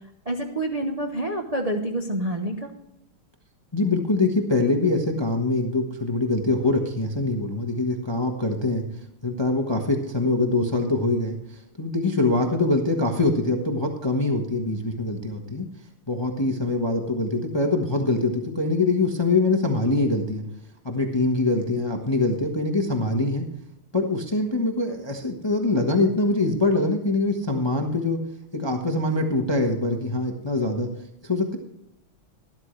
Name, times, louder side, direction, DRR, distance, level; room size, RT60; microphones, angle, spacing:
voice 1, 0.3-2.5, right 1 dB, 40° right, 1 dB, 0.5 m, -27 dB
voice 2, 3.7-8.9 9.2-15.7 16.1-20.4 20.8-23.5 23.9-28.2 28.5-30.9 31.2-31.6, left 2 dB, 20° left, 3 dB, 0.7 m, -24 dB
12.5 x 12.5 x 3.2 m, 0.81 s
omnidirectional pair, 2.4 m